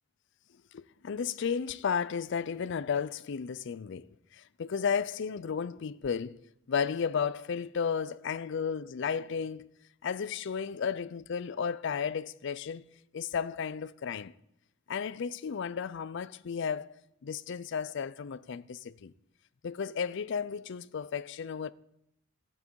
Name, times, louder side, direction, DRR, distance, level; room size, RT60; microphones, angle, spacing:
voice 1, 0.7-6.4 6.7-9.7 10.0-12.8 13.1-14.3 14.9-17.0 17.2-19.1 19.6-21.7, left 6 dB, 60° left, 0.4 m, -33 dB
14.0 x 8.9 x 4.6 m
head